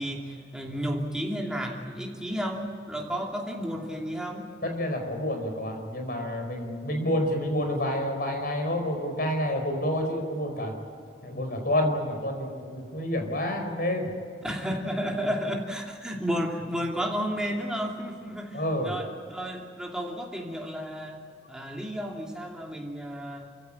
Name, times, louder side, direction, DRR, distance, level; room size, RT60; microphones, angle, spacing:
voice 1, 0.0-4.5 14.4-21.2 21.5-23.5, equal, 5° right, 0 dB, 2.8 m, -32 dB
voice 2, 4.6-10.7 11.2-14.1 18.5-18.9, left 1 dB, 55° left, 4 dB, 4.9 m, -29 dB
28.0 x 16.0 x 8.9 m, 2.3 s
head